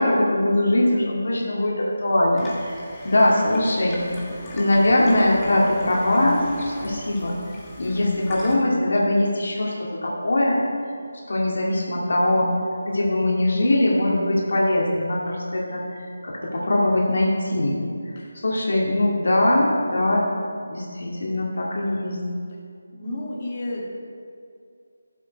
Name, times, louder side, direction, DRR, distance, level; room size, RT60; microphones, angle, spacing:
voice 1, 0.0-2.7 3.0-4.0 4.5-7.4 7.8-10.6 11.3-12.5 12.9-17.8 18.3-20.3 20.7-22.2, left 1 dB, 60° left, -3 dB, 2.4 m, -21 dB
Water tap faucet / Sink (filling or washing), 2.4-8.6, left 2 dB, 15° left, 1.5 m, -40 dB
voice 2, 3.3-3.8 18.2-18.3 22.9-24.1, left 1 dB, 35° left, -3 dB, 2.1 m, -33 dB
13.5 x 7.6 x 4.6 m, 2.3 s
figure-of-eight pair, 155°, 0 cm